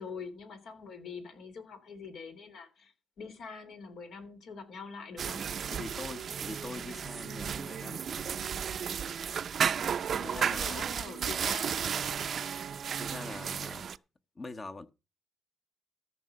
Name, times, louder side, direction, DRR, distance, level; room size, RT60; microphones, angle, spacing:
voice 1, 0.0-5.5 9.7-12.6, left 5 dB, 70° left, 3.0 m, -45 dB
sound 1, 5.2-14.0, right 7 dB, 55° right, 0.5 m, -33 dB
voice 2, 5.7-8.4 10.2-10.8 13.0-13.9 14.3-14.9, left 3 dB, 30° left, 1.1 m, -43 dB
14.0 x 5.8 x 6.5 m
cardioid pair, 90°, 0 cm